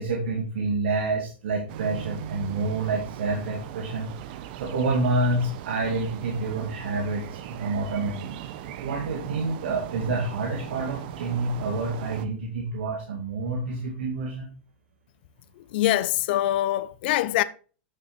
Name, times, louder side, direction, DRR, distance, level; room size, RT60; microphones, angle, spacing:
voice 1, 0.0-4.1 4.6-8.3 8.8-14.5, right 3 dB, 75° right, 2.2 m, -28 dB
sound 1, 1.7-12.3, right 10 dB, 55° right, 1.1 m, -39 dB
voice 2, 15.7-17.4, left 14 dB, 60° left, 0.8 m, -24 dB
9.1 x 6.7 x 4.4 m
hypercardioid pair, 130°, 6 cm